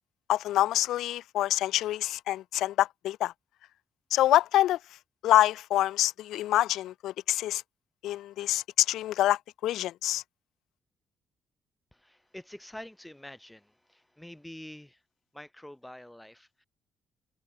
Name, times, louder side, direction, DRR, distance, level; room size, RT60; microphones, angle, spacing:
voice 1, 0.3-3.3 4.1-4.8 5.2-7.6 8.0-10.2, left 14 dB, 85° left, 1.1 m, -26 dB
voice 2, 11.9-15.0 15.3-16.6, left 1 dB, 5° left, 6.3 m, -47 dB
cardioid pair, 90°, 0 cm